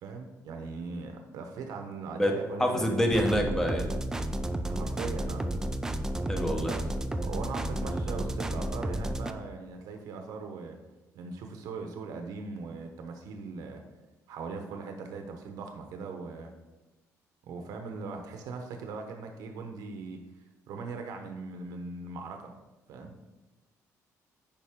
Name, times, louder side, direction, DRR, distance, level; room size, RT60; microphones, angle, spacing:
voice 1, 0.0-3.0 4.6-5.5 6.6-6.9 7.2-10.8 11.1-13.8 14.3-16.5 17.4-20.2 20.7-22.6 22.9-23.1, right 4 dB, 80° right, 4 dB, 0.9 m, -40 dB
voice 2, 2.6-3.9 6.3-6.7, equal, 5° left, 2 dB, 1.1 m, -26 dB
sound 1, 3.1-9.3, right 1 dB, 10° right, 0.4 m, -32 dB
8.9 x 5.5 x 3.6 m, 1.1 s
cardioid pair, 145°, 6 cm